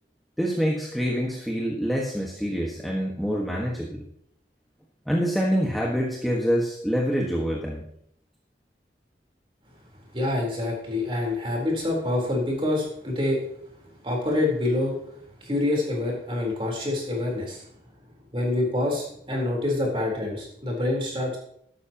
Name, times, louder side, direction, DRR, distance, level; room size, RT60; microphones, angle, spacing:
voice 1, 0.4-4.0 5.1-7.8, equal, ahead, -3 dB, 1.4 m, -26 dB
voice 2, 10.1-13.4 14.0-15.0 15.4-17.6 18.3-21.4, left 2 dB, 30° right, -1 dB, 3.8 m, -26 dB
13.5 x 12.0 x 3.0 m, 0.70 s
head